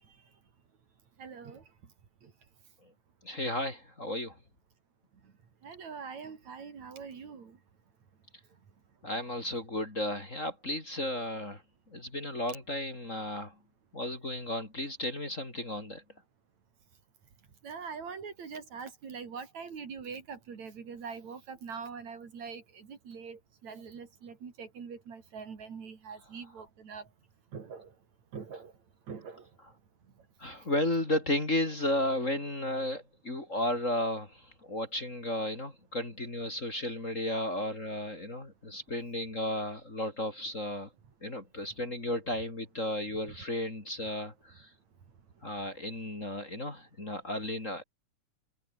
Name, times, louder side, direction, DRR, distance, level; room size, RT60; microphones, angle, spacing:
voice 1, 1.2-1.6 5.6-7.6 17.6-27.0 27.5-27.9 28.3-28.7 29.1-29.5 43.3-43.4, right 6 dB, 60° right, 4.3 m, -43 dB
voice 2, 3.2-4.4 9.0-11.6 11.9-13.5 13.9-16.0 30.4-40.9 41.2-44.7 45.4-47.8, left 1 dB, 20° left, 3.7 m, -34 dB
omnidirectional pair, 3.8 m